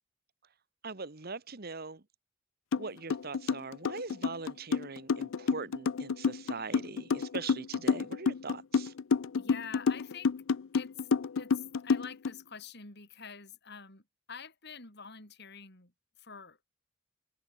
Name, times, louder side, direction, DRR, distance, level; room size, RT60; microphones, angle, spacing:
voice 1, 0.8-2.0 2.8-8.9, right 4 dB, 50° right, 1.3 m, -41 dB
sound 1, 2.7-2.8 3.1-12.3, left 5 dB, 80° left, 0.5 m, -29 dB
voice 2, 9.4-10.3 10.7-11.1 11.3-16.6, left 6 dB, 55° left, 6.6 m, -47 dB
head